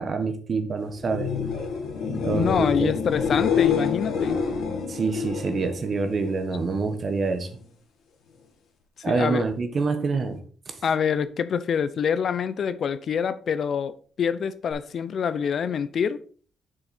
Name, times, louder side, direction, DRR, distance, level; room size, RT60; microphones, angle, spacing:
voice 1, 0.0-1.3 2.2-2.9 4.9-7.5 9.0-10.8, right 4 dB, 40° right, 1.3 m, -26 dB
sound 1, 1.0-6.7 7.1-7.6 14.7-14.8, left 6 dB, 80° left, 2.1 m, -27 dB
voice 2, 2.3-4.4 9.1-9.5 10.8-16.2, left 7 dB, 55° left, 0.6 m, -26 dB
7.7 x 6.3 x 4.3 m
cardioid pair, 120°, 0 cm